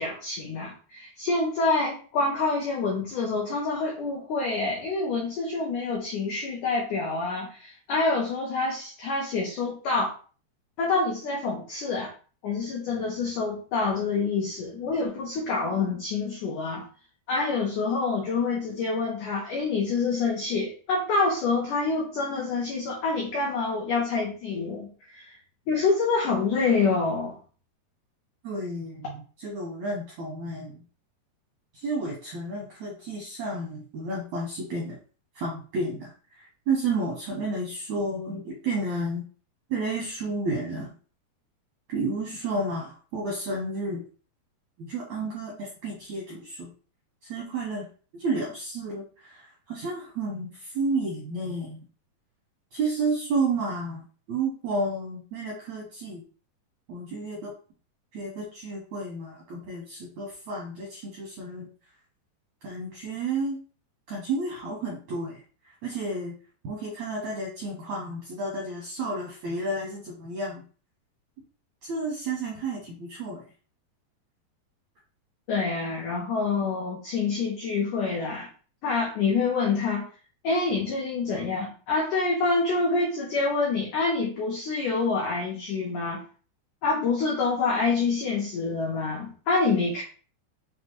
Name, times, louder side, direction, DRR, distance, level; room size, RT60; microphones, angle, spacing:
voice 1, 0.0-10.1 10.8-12.1 12.4-16.9 17.3-25.4 25.7-27.4 75.5-78.5 78.8-80.0 80.4-86.2 86.8-90.0, left 4 dB, 85° left, -2 dB, 1.7 m, -27 dB
voice 2, 28.4-30.8 31.7-35.0 35.3-39.2 39.7-40.9 41.9-44.0 44.8-46.7 47.2-47.9 48.1-51.8 52.7-56.2 56.9-57.5 58.1-61.7 62.6-63.6 64.1-65.4 65.8-66.3 66.6-70.6 71.8-73.4, right 2 dB, 80° right, -3 dB, 1.6 m, -31 dB
6.5 x 2.2 x 2.9 m, 0.39 s
omnidirectional pair, 4.8 m